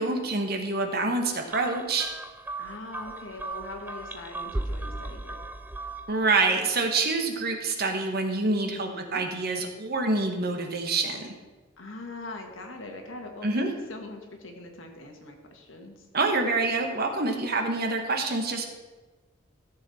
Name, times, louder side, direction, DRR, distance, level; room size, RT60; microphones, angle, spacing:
voice 1, 0.0-2.1 6.1-11.3 13.4-13.7 16.1-18.7, right 3 dB, 50° right, 4 dB, 1.3 m, -26 dB
sound 1, 1.5-6.3, right 2 dB, 10° right, 0.4 m, -36 dB
voice 2, 2.6-5.4 8.6-9.2 11.8-16.1, left 2 dB, 75° left, 3 dB, 1.6 m, -42 dB
14.0 x 7.0 x 4.2 m, 1.3 s
head